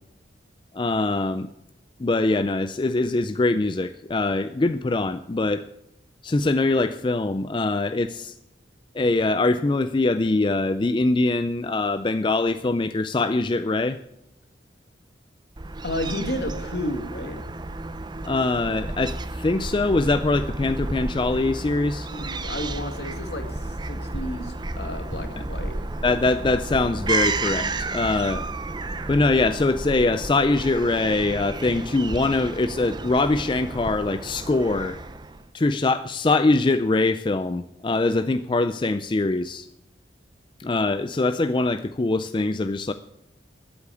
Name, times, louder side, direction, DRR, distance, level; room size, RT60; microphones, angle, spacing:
voice 1, 0.7-1.5 2.0-5.7 6.2-8.3 8.9-14.0 18.2-22.1 26.0-28.4 29.1-35.0 35.5-39.7 40.6-42.9, left 2 dB, 25° left, 11 dB, 0.4 m, -23 dB
Fowl / Gull seagull, 15.6-35.4, right 2 dB, 25° right, 0.6 m, -32 dB
voice 2, 15.8-17.4 22.0-25.8, left 1 dB, 65° left, 6 dB, 2.1 m, -32 dB
sound 1, 18.8-29.5, equal, 10° left, 2.8 m, -40 dB
13.5 x 8.3 x 7.0 m, 0.83 s
head